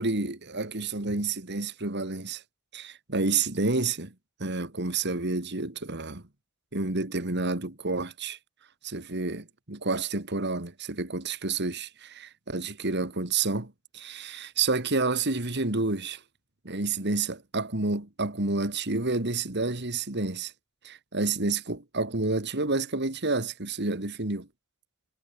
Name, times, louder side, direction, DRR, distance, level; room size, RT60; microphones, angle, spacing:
voice 1, 0.0-2.4 2.7-4.1 4.4-6.2 6.7-8.4 8.8-16.2 16.6-20.5 20.8-24.5, right 3 dB, 50° right, 2.4 m, -29 dB
head